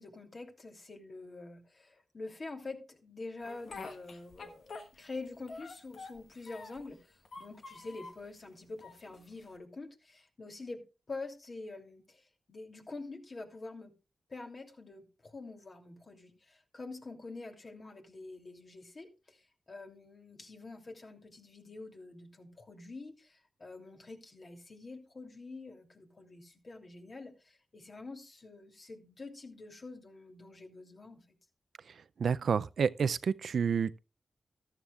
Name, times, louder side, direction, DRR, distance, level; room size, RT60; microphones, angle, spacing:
voice 1, 0.0-12.2 12.5-13.9 14.3-19.4 19.7-31.2, left 3 dB, 50° left, 2.9 m, -46 dB
Speech, 3.4-5.2 5.5-6.9 7.2-8.2 8.8-9.6, left 4 dB, 75° left, 1.3 m, -47 dB
voice 2, 32.2-34.0, right 6 dB, 80° right, 0.4 m, -29 dB
14.0 x 12.5 x 2.4 m
cardioid pair, 50°, 0 cm